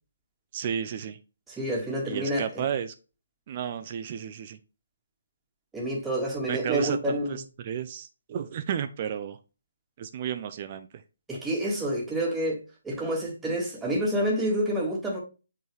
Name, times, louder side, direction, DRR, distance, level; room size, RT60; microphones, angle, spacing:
voice 1, 0.5-1.2 2.0-2.9 3.5-4.6 6.5-9.4 10.0-11.0, right 9 dB, 30° right, 0.6 m, -33 dB
voice 2, 1.5-2.6 5.7-7.4 11.3-15.2, right 1 dB, 5° right, 1.7 m, -28 dB
7.8 x 4.0 x 3.2 m
figure-of-eight pair, 140°, 0 cm